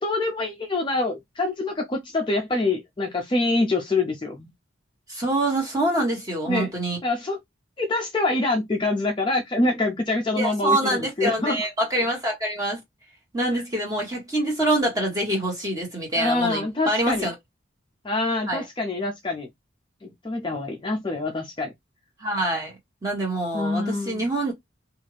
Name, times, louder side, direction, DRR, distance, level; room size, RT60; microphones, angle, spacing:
voice 1, 0.0-4.5 6.5-6.7 7.0-7.4 7.8-11.6 13.5-13.6 16.2-17.3 18.0-19.5 20.0-21.7 23.5-24.3, left 2 dB, 25° left, 0.4 m, -25 dB
voice 2, 5.1-7.0 10.3-12.8 13.3-17.3 18.5-18.6 22.2-22.7 23.0-24.5, right 1 dB, 15° right, 1.4 m, -25 dB
2.7 x 2.4 x 3.2 m
head